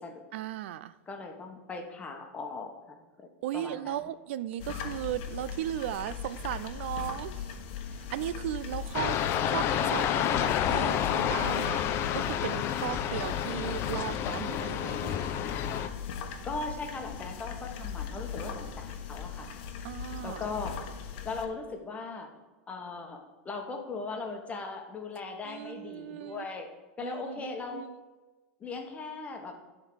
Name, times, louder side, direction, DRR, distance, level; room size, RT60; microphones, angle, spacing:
voice 1, 0.3-0.9 3.4-7.5 8.1-9.2 9.5-11.8 12.1-15.3 19.8-20.5 25.4-26.5 27.0-28.0, right 12 dB, 70° right, 15 dB, 0.4 m, -36 dB
voice 2, 1.1-3.0 3.5-4.1 16.4-19.5 20.2-20.8 21.2-22.3 22.7-23.2 23.4-26.7 27.0-27.9 28.6-29.6, left 4 dB, 20° left, 4 dB, 1.2 m, -38 dB
sound 1, 4.6-21.5, left 7 dB, 60° left, 1.0 m, -39 dB
sound 2, 8.9-15.9, left 10 dB, 40° left, 0.5 m, -29 dB
10.5 x 3.7 x 6.3 m, 1.2 s
supercardioid pair, 130°, 7 cm